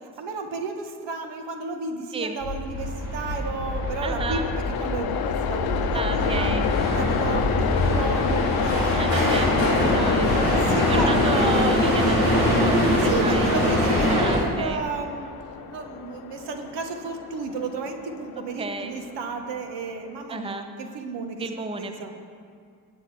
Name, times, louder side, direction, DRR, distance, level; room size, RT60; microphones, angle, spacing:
voice 1, 0.0-6.5 6.9-9.4 10.6-11.4 13.0-15.3 15.7-21.5 21.8-22.1, right 4 dB, 60° right, 5 dB, 1.4 m, -33 dB
sound 1, 2.4-14.4, equal, 80° right, 3.2 m, -23 dB
Train, 2.9-20.1, left 9 dB, 50° left, 0.9 m, -30 dB
voice 2, 4.0-4.5 5.9-6.7 8.9-10.6 10.9-13.5 14.1-14.8 18.6-18.9 20.3-20.7 21.4-22.1, right 3 dB, 10° right, 7 dB, 0.9 m, -32 dB
21.0 x 8.5 x 3.4 m, 2.2 s
figure-of-eight pair, 40°, 48 cm